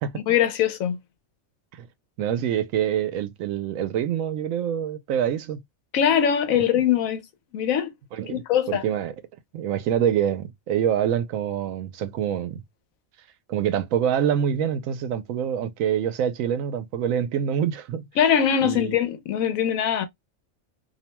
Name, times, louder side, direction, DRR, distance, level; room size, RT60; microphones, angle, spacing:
voice 1, 0.1-1.0 5.9-7.2 7.5-7.9 8.3-8.8 18.2-20.1, left 9 dB, 85° left, 1.1 m, -22 dB
voice 2, 2.2-5.6 8.1-8.4 8.7-9.1 9.5-12.6 13.5-18.0 18.6-18.9, right 9 dB, 80° right, 1.0 m, -25 dB
2.7 x 2.2 x 2.9 m
omnidirectional pair, 1.4 m